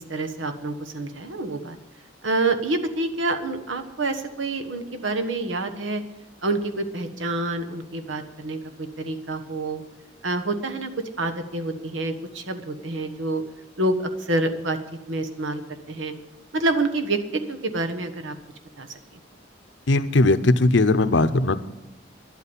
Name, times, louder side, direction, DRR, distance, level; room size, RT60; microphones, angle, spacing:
voice 1, 0.1-1.8 2.2-6.0 6.4-9.8 10.2-10.9 11.2-13.4 13.8-14.8 15.1-16.1 16.5-18.4 18.8-18.9, right 2 dB, 85° right, 7 dB, 1.3 m, -27 dB
voice 2, 19.9-21.6, left 2 dB, 70° left, 13 dB, 0.8 m, -19 dB
11.5 x 8.3 x 9.8 m, 0.98 s
head